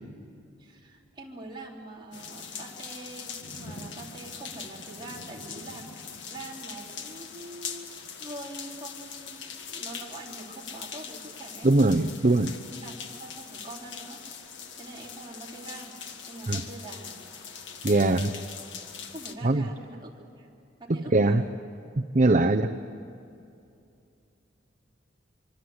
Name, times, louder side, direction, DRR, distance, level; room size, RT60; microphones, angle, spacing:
voice 1, 0.6-11.7 12.3-12.4 12.7-14.2 14.7-16.0 16.3-17.1 19.1-20.5 20.8-21.6, right 2 dB, 25° right, -3 dB, 3.8 m, -44 dB
sound 1, 2.1-19.3, left 6 dB, 75° left, 1.8 m, -41 dB
voice 2, 11.6-12.5 16.5-16.6 17.8-18.3 19.4-19.7 20.9-21.4 22.1-22.7, right 2 dB, 45° right, 6 dB, 0.7 m, -21 dB
25.5 x 25.0 x 7.9 m, 2.6 s
head